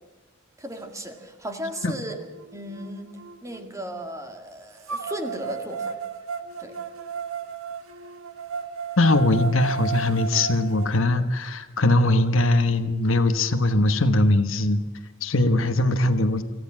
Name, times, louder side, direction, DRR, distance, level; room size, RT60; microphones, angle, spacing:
voice 1, 0.6-2.2 2.5-3.1 3.4-6.0 6.6-6.8, equal, 15° right, 5 dB, 2.0 m, -35 dB
sound 1, 1.1-1.2 1.7-3.6 4.9-10.9, right 5 dB, 85° right, 1.6 m, -34 dB
voice 2, 9.0-14.8 15.2-16.4, left 2 dB, 70° left, 9 dB, 1.2 m, -21 dB
25.5 x 14.5 x 7.4 m, 1.2 s
head